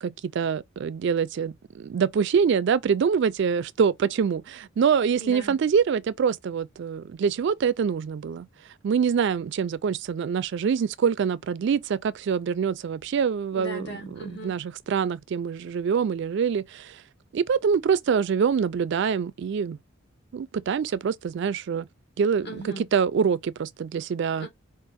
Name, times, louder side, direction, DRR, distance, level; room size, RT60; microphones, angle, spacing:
voice 1, 0.0-8.5 8.8-13.8 14.4-14.6 14.9-17.0 17.3-19.8 20.3-21.9 22.2-22.5 22.8-24.5, right 6 dB, 60° right, 0.3 m, -25 dB
voice 2, 5.2-5.6 13.5-14.6 22.4-22.9 24.4-24.5, right 1 dB, 55° left, 2.2 m, -38 dB
4.5 x 2.4 x 4.1 m
head